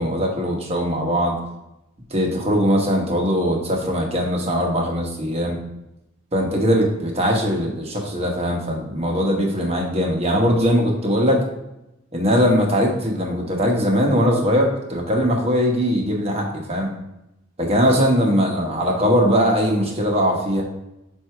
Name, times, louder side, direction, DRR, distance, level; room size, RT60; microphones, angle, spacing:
voice 1, 0.0-1.4 2.1-5.6 6.3-11.4 12.1-16.9 17.6-20.6, equal, 30° right, 0 dB, 1.1 m, -20 dB
7.7 x 2.7 x 4.5 m, 0.90 s
head